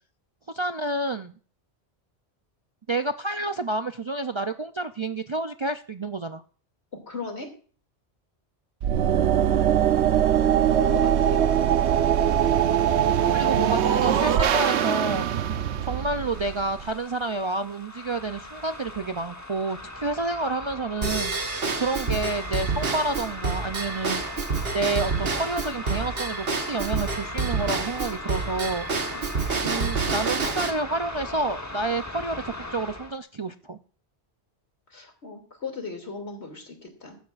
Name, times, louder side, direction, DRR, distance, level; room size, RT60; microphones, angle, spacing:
voice 1, 0.5-1.3 2.9-6.4 13.3-15.3 15.8-24.3 24.7-28.9 29.6-33.8, right 2 dB, 40° right, 7 dB, 0.4 m, -29 dB
voice 2, 7.1-7.5 10.7-11.4 29.0-29.2 34.9-37.2, left 3 dB, 75° left, 4 dB, 2.9 m, -37 dB
sound 1, 8.8-16.9, right 9 dB, 85° right, 1.0 m, -22 dB
sound 2, 16.1-33.2, left 2 dB, 15° left, 1.1 m, -39 dB
Drum kit / Drum / Bell, 21.0-30.7, right 4 dB, 60° right, 1.6 m, -28 dB
15.5 x 12.5 x 2.5 m, 0.41 s
omnidirectional pair, 1.1 m